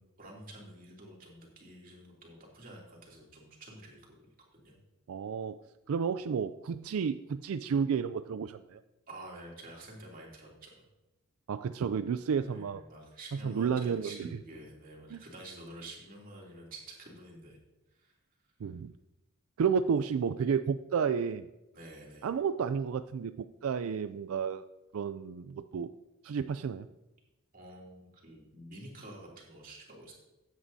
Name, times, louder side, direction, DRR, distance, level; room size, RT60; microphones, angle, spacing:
voice 1, 0.0-4.1 4.5-4.8 9.1-10.8 12.4-17.6 18.0-18.1 21.7-22.4 27.5-30.1, right 1 dB, 40° right, -2 dB, 2.8 m, -49 dB
voice 2, 5.1-8.8 11.5-12.8 13.4-14.3 15.1-15.2 18.6-18.9 19.6-21.5 22.2-24.6 24.9-25.9 26.2-26.9, right 6 dB, 75° right, 12 dB, 0.4 m, -31 dB
14.0 x 9.3 x 2.7 m, 1.0 s
head